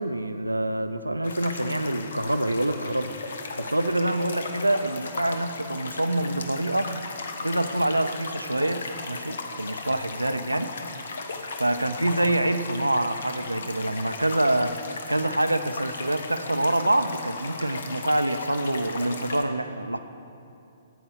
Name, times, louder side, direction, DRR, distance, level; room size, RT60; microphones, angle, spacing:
voice 1, 0.0-3.1 3.6-6.9 7.4-10.8 11.6-14.8 15.1-20.0, right 1 dB, 90° right, 9 dB, 0.6 m, -26 dB
sound 1, 1.2-19.4, left 3 dB, 60° left, 1.1 m, -36 dB
9.1 x 8.5 x 8.0 m, 2.6 s
figure-of-eight pair, 120°, 0 cm